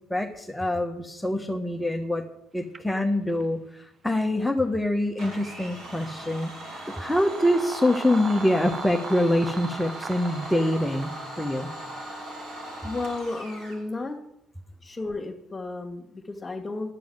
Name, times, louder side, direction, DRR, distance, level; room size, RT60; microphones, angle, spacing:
voice 1, 0.1-2.3 2.5-11.7, left 1 dB, 5° left, 2 dB, 1.3 m, -25 dB
sound 1, 2.7-2.8 3.3-3.4 5.5-5.6 6.2-11.2, right 4 dB, 35° right, 0.7 m, -39 dB
Domestic sounds home sounds, 5.2-13.8, right 1 dB, 65° right, 3.1 m, -39 dB
voice 2, 12.8-14.2 14.8-16.9, left 2 dB, 25° left, -2 dB, 2.0 m, -33 dB
10.5 x 7.0 x 9.4 m, 0.82 s
hypercardioid pair, 55°, 0 cm